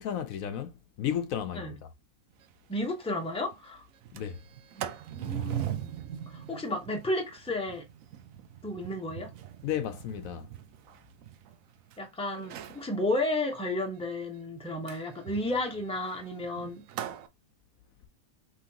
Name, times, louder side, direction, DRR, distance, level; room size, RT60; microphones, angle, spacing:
voice 1, 0.0-1.9 4.1-4.4 9.6-10.5, left 9 dB, 75° left, 1.1 m, -33 dB
Sliding door, 2.4-2.5 2.8-2.9 3.3-3.6 4.0-12.0 12.4-12.9 14.9-17.3, right 11 dB, 70° right, 1.0 m, -41 dB
voice 2, 2.7-3.9 4.7-6.0 6.3-7.8 8.6-9.3 12.0-16.8, left 1 dB, 5° left, 0.9 m, -33 dB
5.6 x 3.1 x 2.9 m
omnidirectional pair, 1.5 m